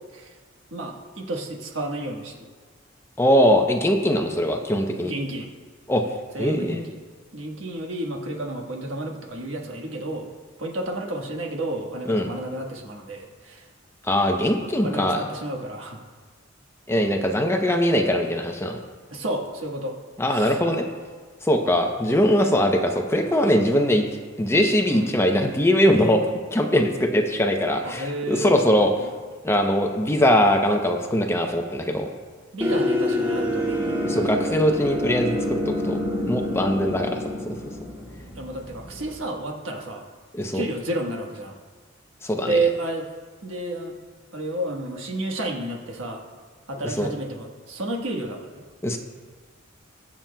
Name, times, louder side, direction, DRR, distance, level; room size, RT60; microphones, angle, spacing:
voice 1, 0.7-2.5 5.0-5.5 6.3-7.0 7.3-10.3 10.6-13.7 14.7-16.0 19.1-19.9 20.3-20.6 23.2-23.3 24.9-25.1 27.8-28.7 29.0-29.1 32.5-34.1 38.3-40.1 40.5-41.5 42.4-43.1 43.4-43.9 44.3-46.2 46.7-48.6, right 2 dB, 80° right, 1 dB, 1.4 m, -31 dB
voice 2, 3.2-5.1 5.9-6.0 6.4-6.9 12.1-12.3 14.1-15.2 16.9-18.8 20.2-20.9 21.4-24.0 24.4-26.2 26.5-28.9 29.4-32.1 34.1-35.4 35.7-36.0 36.3-37.5 40.3-40.6 42.2-42.6 47.0-47.1 48.8-49.0, equal, 15° left, 4 dB, 0.6 m, -21 dB
sound 1, 32.6-39.2, left 1 dB, 10° right, 2.1 m, -27 dB
21.5 x 7.4 x 2.3 m, 1.5 s
head